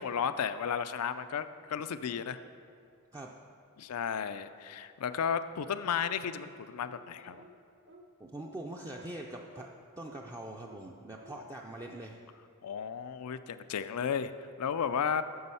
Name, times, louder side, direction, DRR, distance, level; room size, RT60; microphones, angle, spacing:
voice 1, 0.0-2.4 3.8-7.4 12.6-14.3 14.6-15.2, left 7 dB, 80° left, 12 dB, 0.4 m, -33 dB
sound 1, 6.8-7.0 7.3-7.5 7.9-8.1 8.4-8.5 8.9-9.1 9.5-9.7 10.1-10.2 10.6-10.8 11.2-11.4 11.8-12.0, right 1 dB, 55° right, 0.8 m, -53 dB
voice 2, 8.2-9.7 10.0-12.2, right 1 dB, 15° right, 0 dB, 0.4 m, -43 dB
9.5 x 7.1 x 5.6 m, 2.4 s
head